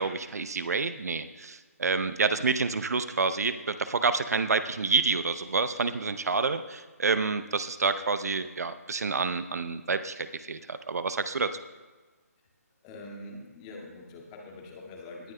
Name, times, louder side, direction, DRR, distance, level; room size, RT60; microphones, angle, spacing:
voice 1, 0.0-11.5, right 4 dB, 70° right, 11 dB, 0.6 m, -28 dB
voice 2, 12.8-15.3, left 2 dB, 20° left, 0 dB, 1.9 m, -44 dB
19.5 x 11.0 x 2.2 m, 1.3 s
figure-of-eight pair, 150°, 9 cm